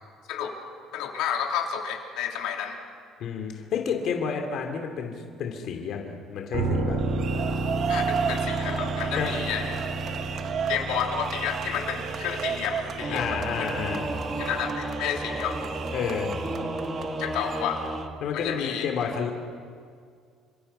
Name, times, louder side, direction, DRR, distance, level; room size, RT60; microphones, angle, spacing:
voice 1, 0.9-2.8 7.9-9.8 10.7-13.7 14.4-15.6 17.2-17.9 18.3-18.9, left 8 dB, 85° left, 1 dB, 3.1 m, -31 dB
voice 2, 3.2-7.0 9.2-9.3 13.1-14.1 15.9-16.4 18.2-19.3, left 6 dB, 50° left, 3 dB, 2.8 m, -30 dB
sound 1, 6.5-18.1 18.4-18.5, right 2 dB, 75° right, 3.8 m, -33 dB
sound 2, 7.0-18.1, right 7 dB, 40° right, 1.0 m, -34 dB
Singing / Musical instrument, 13.0-18.0, right 2 dB, 20° right, 1.8 m, -32 dB
29.0 x 26.5 x 5.6 m, 2.1 s
cardioid pair, 180°, 0 cm